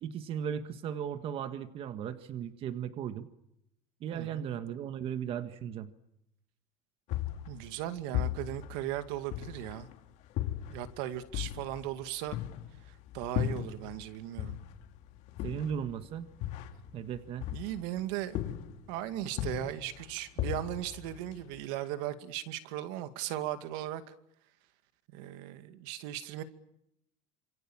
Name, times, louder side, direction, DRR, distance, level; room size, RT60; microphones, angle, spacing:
voice 1, 0.0-3.3 4.0-5.9 15.4-16.3 16.9-17.5, right 8 dB, 45° right, 10 dB, 1.6 m, -36 dB
voice 2, 4.1-4.4 7.5-9.9 10.7-12.4 13.1-14.6 17.5-18.4 18.9-24.0 25.1-26.4, right 12 dB, 75° right, 10 dB, 2.4 m, -37 dB
sound 1, 7.1-9.9 10.4-14.1 14.4-18.0 18.3-18.9 19.3-21.6, left 12 dB, 55° left, 2.8 m, -36 dB
28.0 x 27.0 x 7.4 m, 0.79 s
cardioid pair, 145°, 14 cm